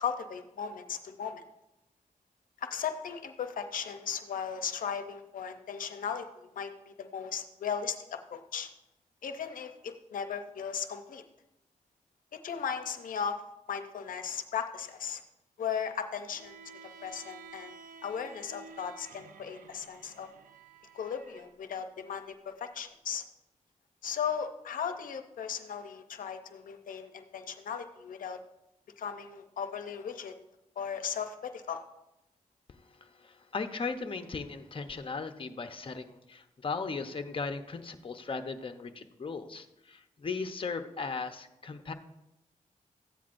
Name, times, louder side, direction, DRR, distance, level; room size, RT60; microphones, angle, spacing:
voice 1, 0.0-1.4 2.6-8.7 9.2-11.2 12.3-13.4 13.7-15.2 15.6-17.8 18.0-20.3 20.9-23.2 24.0-28.4 29.0-30.3 30.8-31.8, left 7 dB, 85° left, 8 dB, 0.6 m, -37 dB
Bowed string instrument, 16.3-21.5, right 5 dB, 85° right, 0.7 m, -52 dB
voice 2, 32.7-41.9, left 4 dB, 40° left, 7 dB, 0.8 m, -37 dB
14.5 x 9.2 x 2.6 m, 0.90 s
cardioid pair, 75°, 14 cm